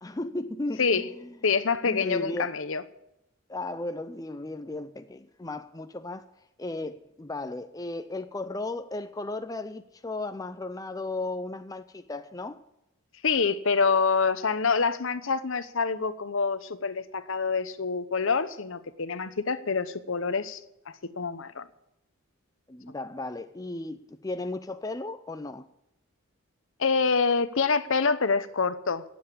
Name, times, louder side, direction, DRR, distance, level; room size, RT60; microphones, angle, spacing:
voice 1, 0.0-1.3 1.8-2.6 3.5-6.3 6.6-12.6 22.7-25.7, left 2 dB, 15° left, 0.5 m, -35 dB
voice 2, 1.4-2.8 13.2-20.6 21.0-21.7 26.8-29.0, left 5 dB, 65° left, 0.8 m, -26 dB
16.5 x 7.9 x 8.6 m
head